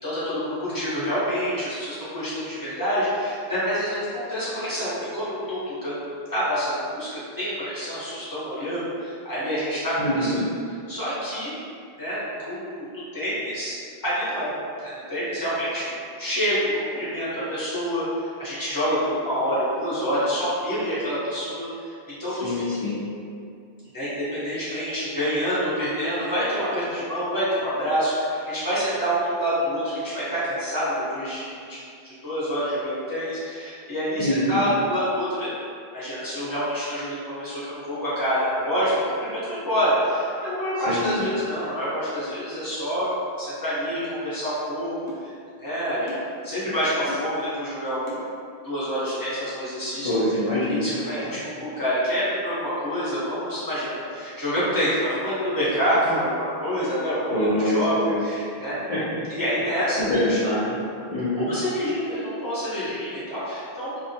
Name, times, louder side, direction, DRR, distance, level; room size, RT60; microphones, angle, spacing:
voice 1, 0.0-6.0 6.3-10.3 10.9-11.5 12.0-12.9 13.1-13.8 14.0-14.5 14.8-18.0 18.4-21.9 22.2-22.7 23.9-35.5 35.9-43.1 43.4-44.9 45.2-45.3 45.6-46.1 46.4-48.1 48.6-50.1 50.7-57.4 57.7-57.9 58.2-58.8 59.3-60.4 61.4-64.1, equal, 20° left, -12 dB, 0.8 m, -27 dB
voice 2, 10.0-10.4 22.3-23.0 34.2-34.6 40.9-41.3 50.0-50.8 57.3-58.2 58.9-59.2 60.0-60.8 61.1-61.5, left 1 dB, 55° left, -11 dB, 0.4 m, -24 dB
sound 1, 45.1-45.3 46.1-46.3 47.1-47.4 48.1-48.3 49.1-49.2 50.1-50.4 51.1-51.3 52.1-52.2, left 2 dB, 90° left, 0.9 m, -38 dB
2.2 x 2.1 x 2.6 m, 2.4 s
omnidirectional pair, 1.1 m